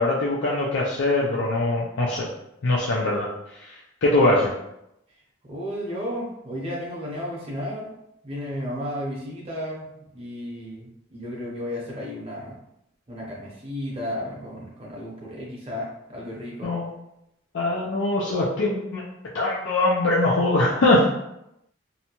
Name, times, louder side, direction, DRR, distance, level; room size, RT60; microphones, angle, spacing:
voice 1, 0.0-2.3 2.6-3.3 3.7-4.5 16.6-16.9 17.5-19.0 19.3-21.1, left 2 dB, 70° left, -5 dB, 0.5 m, -22 dB
voice 2, 5.5-7.9 8.2-9.9 10.1-12.5 13.1-16.7 21.0-21.1, equal, 30° right, -4 dB, 0.8 m, -33 dB
2.6 x 2.2 x 2.8 m, 0.83 s
head